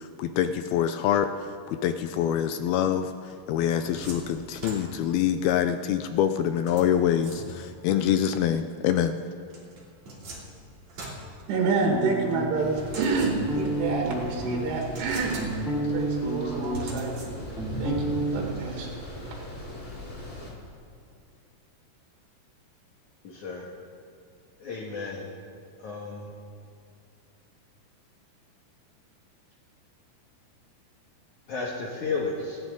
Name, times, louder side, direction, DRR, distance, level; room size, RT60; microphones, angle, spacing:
voice 1, 0.0-9.1, left 9 dB, 85° left, 9 dB, 2.2 m, -25 dB
sound 1, 3.3-5.3 6.7-7.9 9.5-12.0 12.8-13.8 14.2-14.3 14.8-15.9 16.7-17.7, right 1 dB, 45° right, 3.8 m, -42 dB
voice 2, 11.5-15.4 15.7-17.3 17.8-18.9, right 4 dB, 75° right, -2 dB, 3.8 m, -28 dB
sound 2, 11.8-12.7 13.2-14.6 15.1-17.0 17.3-18.4, right 1 dB, ahead, 2.8 m, -30 dB
sound 3, 12.5-20.5, left 1 dB, 15° left, 3.8 m, -39 dB
voice 3, 23.2-23.7 24.6-25.3 25.8-26.3 31.5-32.6, left 3 dB, 55° left, -3 dB, 2.5 m, -33 dB
27.5 x 11.5 x 3.8 m, 2.5 s
omnidirectional pair, 4.9 m